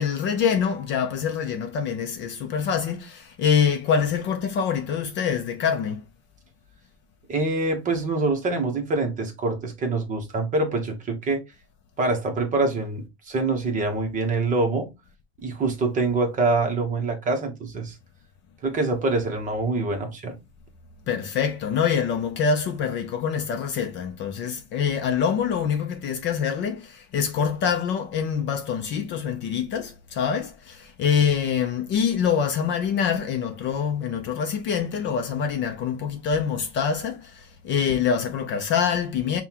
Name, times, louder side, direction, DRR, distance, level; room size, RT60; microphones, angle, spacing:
voice 1, 0.0-6.0 21.1-39.4, left 7 dB, 35° left, 0.5 m, -25 dB
voice 2, 7.3-11.4 12.0-14.9 15.4-17.9 18.6-20.4, right 3 dB, 25° right, 0.9 m, -25 dB
5.5 x 2.3 x 2.8 m
supercardioid pair, 145°, 32 cm